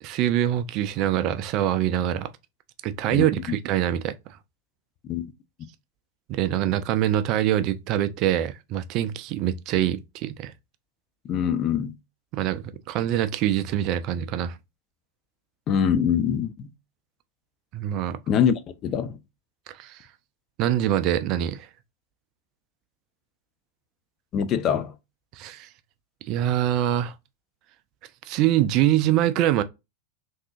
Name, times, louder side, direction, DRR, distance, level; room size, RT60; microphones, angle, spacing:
voice 1, 0.0-2.3 2.8-4.1 6.3-10.5 12.3-14.6 17.7-18.2 19.8-20.0 20.6-21.7 25.4-25.7 26.3-27.1 28.3-29.6, right 12 dB, 40° right, 0.3 m, -24 dB
voice 2, 11.3-11.9 15.7-16.5 18.3-19.2 24.3-24.9, left 8 dB, 35° left, 0.4 m, -24 dB
3.5 x 2.7 x 2.4 m
figure-of-eight pair, 90°, 0 cm